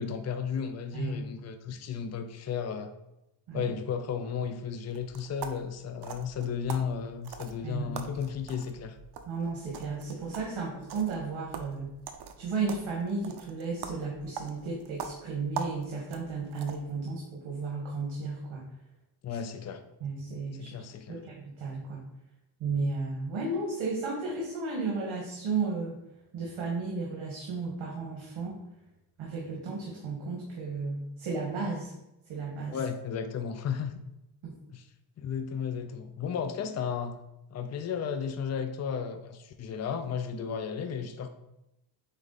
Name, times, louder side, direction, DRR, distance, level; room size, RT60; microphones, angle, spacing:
voice 1, 0.0-2.9 3.5-9.0 19.2-19.8 20.5-21.2 32.7-33.9 34.7-34.8 35.2-37.2 37.5-41.3, left 7 dB, 35° left, 8 dB, 0.6 m, -34 dB
sound 1, 4.9-17.0, right 7 dB, 55° right, 0.8 m, -43 dB
voice 2, 9.3-11.9 12.4-18.7 19.3-19.4 20.0-20.8 21.1-22.0 22.6-26.0 26.3-28.6 29.2-31.9 32.3-32.8 34.4-34.6, right 4 dB, 70° right, -2 dB, 1.8 m, -34 dB
8.8 x 3.7 x 4.0 m, 0.88 s
cardioid pair, 130°, 48 cm